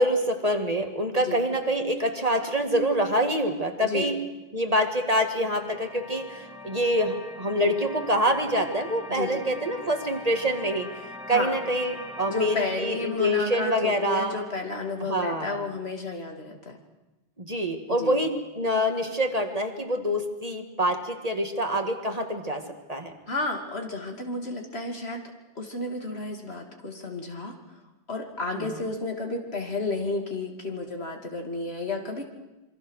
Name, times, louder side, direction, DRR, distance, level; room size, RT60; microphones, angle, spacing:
voice 1, 0.0-4.2 4.5-10.9 11.3-14.4 15.1-15.6 17.4-22.6 22.9-23.1 28.5-28.7, equal, 35° right, 4 dB, 2.2 m, -26 dB
sound 1, 4.8-15.9, left 2 dB, ahead, 4.4 m, -43 dB
voice 2, 9.1-9.4 11.3-11.6 12.3-16.8 17.9-18.2 23.3-25.2 25.5-27.6 28.1-32.2, left 2 dB, 70° left, 3 dB, 2.9 m, -32 dB
27.0 x 24.0 x 6.5 m, 1.1 s
omnidirectional pair, 1.1 m